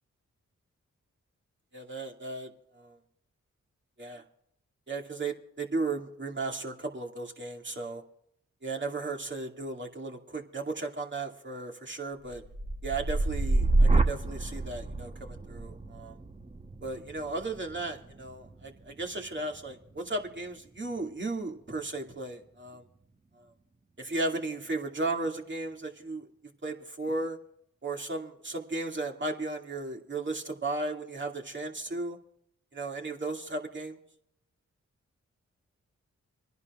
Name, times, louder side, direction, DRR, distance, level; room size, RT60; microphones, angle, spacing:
voice 1, 1.7-3.0 4.0-4.2 4.9-8.0 8.6-12.4 12.8-16.2 16.8-22.8 23.4-23.5 24.0-26.3 26.6-27.4 27.8-32.2 32.7-34.0, right 2 dB, 40° right, 1 dB, 2.4 m, -35 dB
sound 1, 12.3-20.3 20.7-21.2, right 2 dB, 25° right, 1.2 m, -29 dB
26.5 x 11.0 x 2.5 m, 0.71 s
cardioid pair, 50°, 30 cm